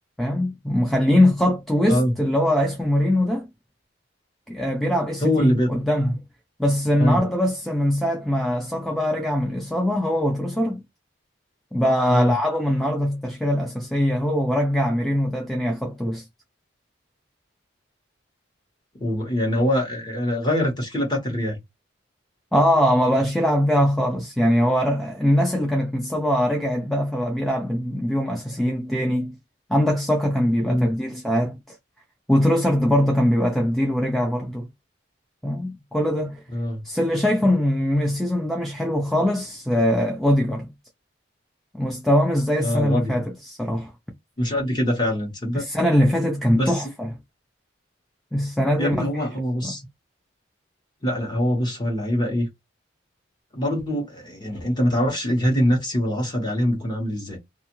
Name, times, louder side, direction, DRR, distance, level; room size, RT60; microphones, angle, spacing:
voice 1, 0.2-3.5 4.5-6.1 6.6-10.8 11.7-16.3 22.5-29.4 29.7-31.8 32.3-34.7 35.4-36.4 36.8-40.7 41.7-43.9 45.5-47.1 48.3-49.1 49.6-49.7, equal, ahead, 0.3 m, -22 dB
voice 2, 5.2-5.7 7.0-7.2 12.1-12.3 18.9-21.6 30.7-30.9 36.5-36.8 42.6-43.2 44.4-45.6 46.5-46.9 48.8-49.8 51.0-52.5 53.5-57.4, equal, 20° left, 1.0 m, -23 dB
2.5 x 2.4 x 2.9 m
head